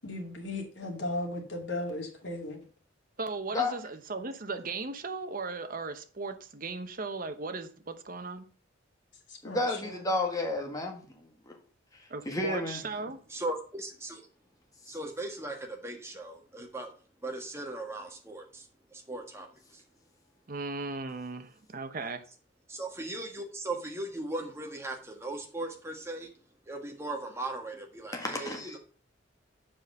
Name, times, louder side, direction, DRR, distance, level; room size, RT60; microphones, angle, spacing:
voice 1, 0.0-2.6 9.3-10.0, left 2 dB, 70° left, 2.4 m, -36 dB
voice 2, 3.2-8.5 12.1-13.2 20.5-22.2, right 3 dB, 50° right, 0.9 m, -37 dB
voice 3, 9.4-11.6 12.2-12.8 14.9-15.0 28.1-28.8, left 2 dB, 20° left, 1.6 m, -32 dB
voice 4, 13.3-14.2 14.9-16.9 17.2-18.6 18.9-19.8 22.7-26.3 26.7-28.8, right 2 dB, 15° right, 1.5 m, -38 dB
7.2 x 5.2 x 5.4 m
head